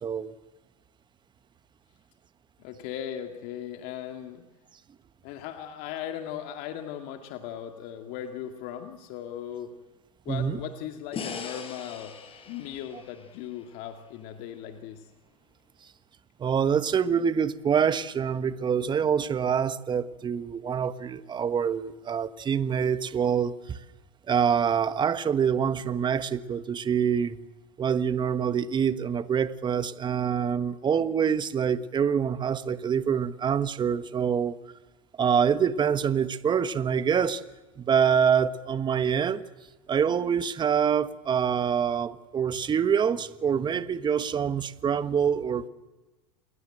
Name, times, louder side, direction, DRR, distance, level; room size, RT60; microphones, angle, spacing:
voice 1, 0.0-0.3 10.3-10.6 16.4-23.8 24.3-27.4 27.8-34.6 35.2-37.4 37.8-39.4 39.9-45.7, right 7 dB, 25° right, 1.3 m, -25 dB
voice 2, 2.6-4.4 5.2-9.7 10.3-12.1 12.5-15.1, left 10 dB, 55° left, 2.3 m, -38 dB
sound 1, 11.1-14.4, left 5 dB, 30° left, 5.6 m, -41 dB
28.0 x 21.5 x 7.8 m
hypercardioid pair, 105°, 19 cm